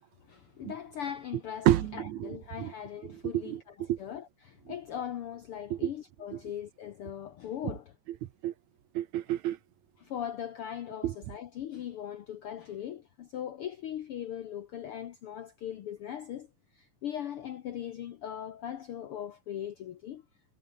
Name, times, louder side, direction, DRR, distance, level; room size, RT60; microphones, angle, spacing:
voice 1, 0.3-1.7 1.9-3.6 4.0-7.8 10.0-16.5 16.7-20.2, left 10 dB, 70° left, 1.3 m, -39 dB
voice 2, 1.7-2.7 3.0-4.0 5.7-5.9 6.3-6.4 7.6-7.7 8.2-8.5 8.9-9.6 11.0-11.2, right 13 dB, 70° right, 2.1 m, -30 dB
omnidirectional pair, 3.7 m